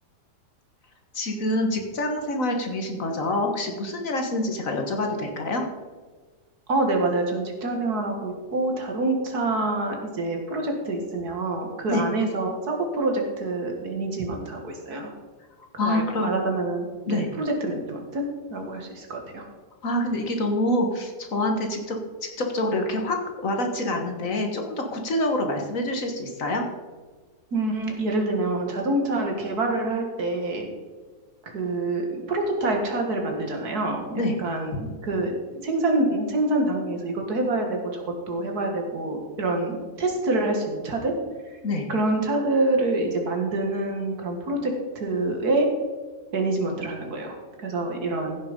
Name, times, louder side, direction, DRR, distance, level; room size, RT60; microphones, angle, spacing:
voice 1, 1.1-5.7 11.9-12.0 15.8-16.3 17.1-17.3 19.8-26.6 34.1-34.4 41.6-41.9, left 1 dB, 55° left, 3 dB, 1.7 m, -26 dB
voice 2, 6.7-15.1 15.7-18.2 18.5-19.4 27.5-30.7 31.4-41.1 41.5-41.6 41.9-45.7 46.3-48.4, right 2 dB, 65° right, 2 dB, 2.3 m, -26 dB
15.0 x 6.3 x 5.3 m, 1.4 s
omnidirectional pair, 1.8 m